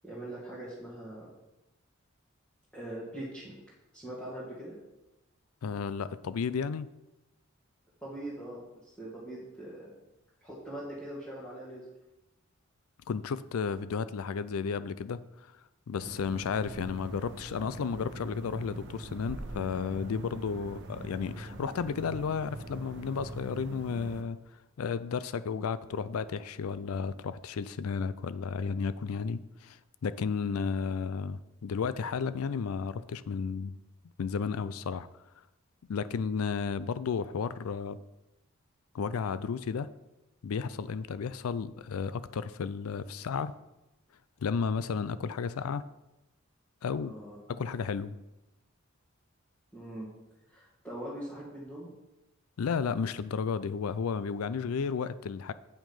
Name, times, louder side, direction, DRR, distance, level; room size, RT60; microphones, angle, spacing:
voice 1, 0.0-1.3 2.7-3.6 3.9-4.8 8.0-9.9 10.4-11.8 47.0-47.4 49.7-50.1 50.5-51.9, right 1 dB, 5° left, -9 dB, 2.3 m, -42 dB
voice 2, 5.6-6.9 13.1-15.2 15.9-24.4 24.8-33.7 34.2-35.1 35.9-38.0 38.9-39.9 40.4-43.5 44.4-45.8 46.8-47.1 47.5-48.1 52.6-55.5, left 5 dB, 90° left, 15 dB, 0.4 m, -33 dB
sound 1, 16.0-24.2, right 1 dB, 55° right, 0.9 m, -43 dB
8.7 x 6.0 x 5.6 m, 0.97 s
head